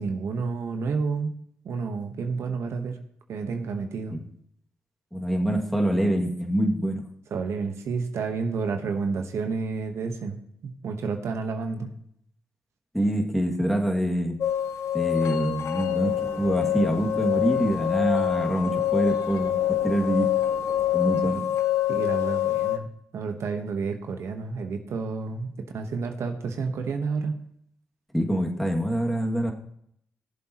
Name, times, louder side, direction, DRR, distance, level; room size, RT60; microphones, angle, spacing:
voice 1, 0.0-1.3 1.6-3.0 3.3-4.2 7.3-11.9 21.3-21.4 21.9-22.9 23.1-25.5 25.7-27.4, right 4 dB, 75° right, 5 dB, 1.2 m, -30 dB
voice 2, 5.1-7.0 12.9-14.4 14.9-20.3 20.9-21.4 28.1-29.5, right 1 dB, ahead, 0 dB, 2.2 m, -25 dB
sound 1, 14.4-22.8, left 12 dB, 75° left, 1.0 m, -26 dB
sound 2, 15.7-21.3, right 2 dB, 40° right, 2.0 m, -44 dB
19.0 x 7.4 x 3.0 m, 0.69 s
cardioid pair, 65°, 5 cm